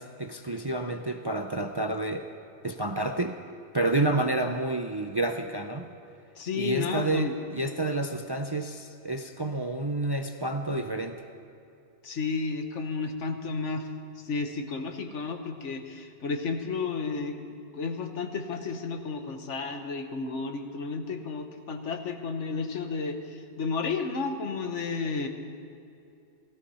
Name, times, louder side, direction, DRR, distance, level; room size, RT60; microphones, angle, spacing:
voice 1, 0.0-2.3 2.6-3.4 3.7-5.9 6.5-11.2, right 2 dB, 30° right, 5 dB, 0.5 m, -29 dB
voice 2, 6.4-7.3 12.0-13.9 14.2-17.4 17.7-25.3, left 4 dB, 80° left, 6 dB, 1.5 m, -32 dB
16.5 x 14.5 x 5.6 m, 2.6 s
omnidirectional pair, 1.2 m